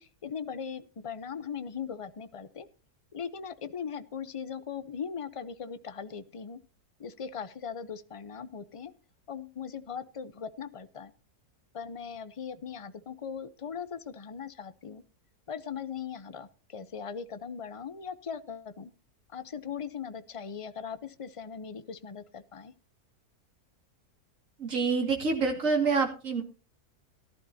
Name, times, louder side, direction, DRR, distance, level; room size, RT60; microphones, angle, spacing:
voice 1, 0.0-2.7 3.1-6.6 7.0-8.9 9.3-11.1 11.7-15.0 15.5-18.9 19.3-22.7, left 7 dB, 45° left, 13 dB, 0.4 m, -39 dB
voice 2, 24.6-26.4, right 4 dB, 55° right, 1 dB, 3.0 m, -27 dB
17.5 x 11.5 x 2.8 m, 0.35 s
omnidirectional pair, 1.6 m